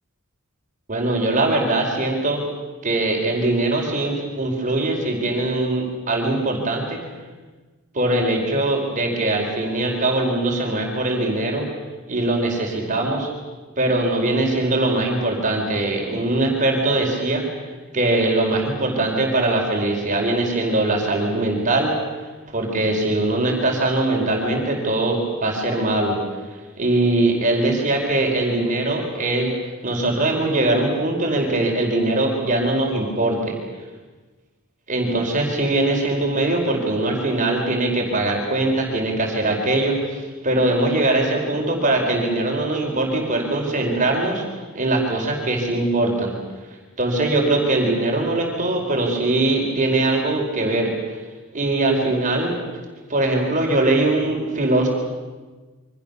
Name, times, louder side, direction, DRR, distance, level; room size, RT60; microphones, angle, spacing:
voice 1, 0.9-2.4 2.8-7.0 7.9-11.6 12.1-13.3 13.8-17.4 17.9-22.0 22.5-26.2 26.8-29.5 29.8-33.5 34.9-44.4 44.7-46.3 47.0-50.9 51.5-52.6 53.1-54.9, right 2 dB, 35° right, 1 dB, 4.7 m, -21 dB
28.0 x 24.5 x 7.0 m, 1.3 s
head